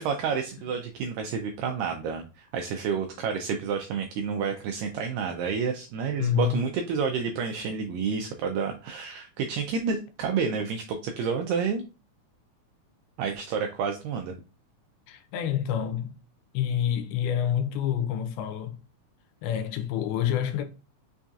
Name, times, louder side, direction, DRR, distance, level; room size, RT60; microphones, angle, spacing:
voice 1, 0.0-11.8 13.2-14.4, right 6 dB, 85° right, 1.9 m, -29 dB
voice 2, 6.2-6.6 15.1-16.2 16.5-18.8 19.4-20.6, left 10 dB, 85° left, 2.5 m, -27 dB
5.8 x 2.6 x 2.3 m
omnidirectional pair, 4.3 m